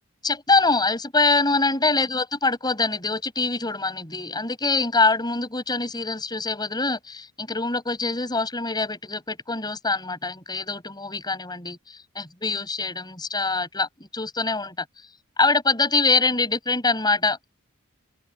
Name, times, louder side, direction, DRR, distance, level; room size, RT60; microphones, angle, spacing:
voice 1, 0.2-11.8 12.2-14.9 15.4-17.5, left 3 dB, 20° left, 7.1 m, -24 dB
open air
head